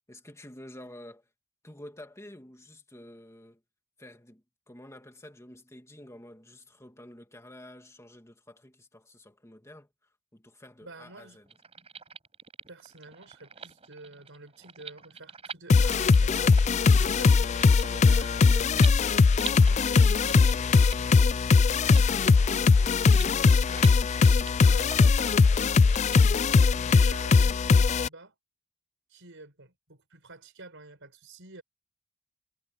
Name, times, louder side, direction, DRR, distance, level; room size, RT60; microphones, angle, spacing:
voice 1, 0.1-1.3 1.6-3.6 4.0-9.9 10.3-11.5, left 1 dB, 15° left, 2.4 m, -49 dB
voice 2, 10.8-11.4 12.7-21.4 22.5-25.2 26.7-28.3 29.1-31.6, right 3 dB, 60° right, 5.3 m, -49 dB
sound 1, 11.5-26.2, right 6 dB, 25° right, 5.4 m, -45 dB
sound 2, 15.7-28.1, left 4 dB, 30° left, 0.3 m, -20 dB
head